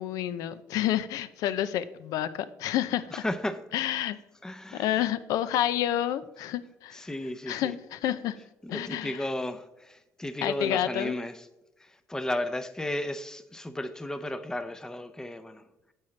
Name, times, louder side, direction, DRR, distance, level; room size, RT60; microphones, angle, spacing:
voice 1, 0.0-3.2 3.7-4.2 4.7-7.1 7.5-8.4 8.7-9.3 10.4-11.1, left 12 dB, 75° left, 0.5 m, -29 dB
voice 2, 3.2-3.6 4.4-4.9 6.9-7.7 8.7-11.3 11.8-15.6, left 1 dB, 10° left, 0.6 m, -34 dB
8.9 x 7.2 x 3.2 m
cardioid pair, 90°, 6 cm